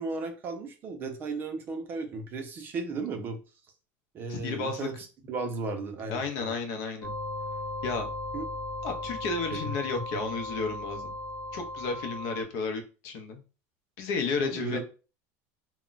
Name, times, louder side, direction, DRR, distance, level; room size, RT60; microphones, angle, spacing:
voice 1, 0.0-3.4 4.1-4.9 5.3-6.5 8.3-8.4 9.5-9.7 14.4-14.8, right 3 dB, 30° right, 5 dB, 0.5 m, -35 dB
voice 2, 4.3-4.9 6.1-7.1 7.8-8.1 8.8-11.1 11.5-13.4 14.0-14.8, left 4 dB, 60° left, 6 dB, 0.6 m, -32 dB
sound 1, 7.0-12.4, left 1 dB, 15° left, 0.8 m, -36 dB
2.2 x 2.1 x 3.8 m, 0.34 s
cardioid pair, 155°, 7 cm